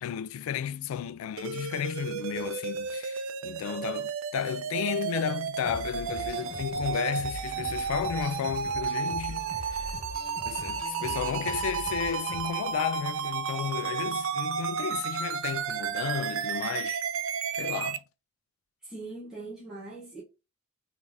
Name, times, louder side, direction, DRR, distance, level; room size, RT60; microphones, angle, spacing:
voice 1, 0.0-9.9 10.4-17.0 17.5-18.0, left 8 dB, 90° left, 0.3 m, -33 dB
sound 1, 1.4-18.0, right 7 dB, 75° right, 0.4 m, -33 dB
sound 2, 5.6-12.8, left 1 dB, 45° left, 1.7 m, -42 dB
voice 2, 18.8-20.2, right 2 dB, 5° right, 1.1 m, -41 dB
3.4 x 3.3 x 2.5 m
head